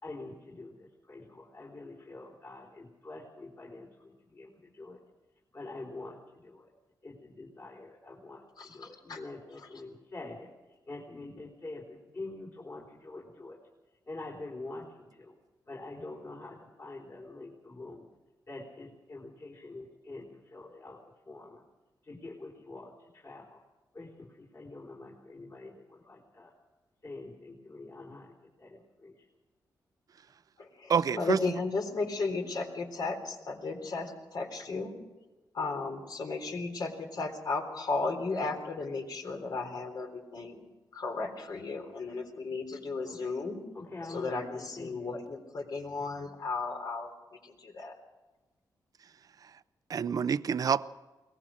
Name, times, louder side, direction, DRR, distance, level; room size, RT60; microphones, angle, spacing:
voice 1, 0.0-5.0 5.5-6.7 7.0-10.5 10.9-13.6 14.1-15.4 15.7-18.1 18.5-21.0 21.3-21.6 22.0-23.6 23.9-26.5 27.0-29.2 43.0-43.2 43.7-45.1, left 2 dB, 40° left, 3.9 m, -45 dB
voice 2, 8.6-9.2 30.6-35.0 35.5-40.6 40.9-43.6 44.1-47.1 47.4-47.9, left 3 dB, 65° left, 3.7 m, -35 dB
voice 3, 30.9-31.4 49.9-50.8, right 7 dB, 55° right, 0.5 m, -27 dB
22.0 x 19.0 x 6.3 m
cardioid pair, 105°, 8 cm